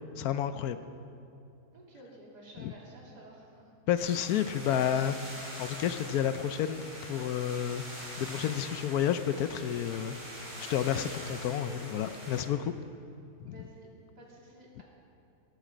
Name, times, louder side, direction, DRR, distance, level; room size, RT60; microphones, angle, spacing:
voice 1, 0.2-0.8 2.6-2.7 3.9-5.2 5.6-10.2 10.6-12.7 13.4-13.6, left 9 dB, 70° left, 11 dB, 1.0 m, -30 dB
voice 2, 1.7-3.7 13.5-13.9 14.2-14.8, right 1 dB, 80° right, -3 dB, 3.4 m, -52 dB
sound 1, 4.0-12.4, equal, 25° right, 4.8 m, -44 dB
19.5 x 12.0 x 5.1 m, 2.7 s
omnidirectional pair, 1.7 m